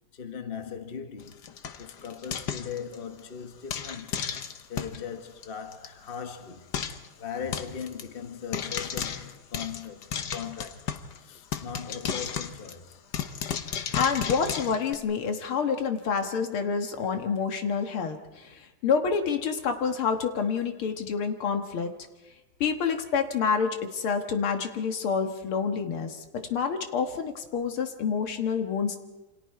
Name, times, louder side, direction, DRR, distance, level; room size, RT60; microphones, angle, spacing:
voice 1, 0.1-1.4 1.8-4.4 4.7-10.9 11.2-13.0, left 7 dB, 30° left, 1.4 m, -39 dB
Frying (food), 1.2-3.2 3.7-5.0 5.4-5.5 5.7-5.9 6.1-6.2 6.7-7.1 7.5-8.0 8.5-11.2 11.5-14.9, left 8 dB, 55° left, 1.5 m, -34 dB
voice 2, 13.7-21.9 22.6-26.2 26.5-29.0, left 6 dB, 75° left, 2.4 m, -28 dB
28.5 x 26.0 x 4.8 m
omnidirectional pair, 2.4 m